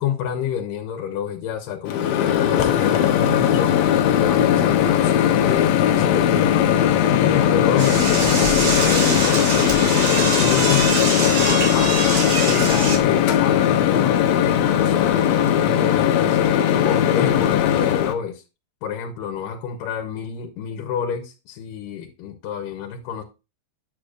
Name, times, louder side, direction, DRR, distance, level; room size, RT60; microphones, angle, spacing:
voice 1, 0.0-3.8 4.2-6.8 7.2-12.1 12.4-16.4 16.8-18.4 18.8-23.2, left 8 dB, 90° left, 2.4 m, -29 dB
Microwave oven, 1.9-18.1, left 10 dB, 70° left, 1.8 m, -18 dB
Door / Toilet flush, 7.8-13.0, right 2 dB, 75° right, 4.5 m, -24 dB
9.2 x 6.4 x 2.4 m
omnidirectional pair, 3.7 m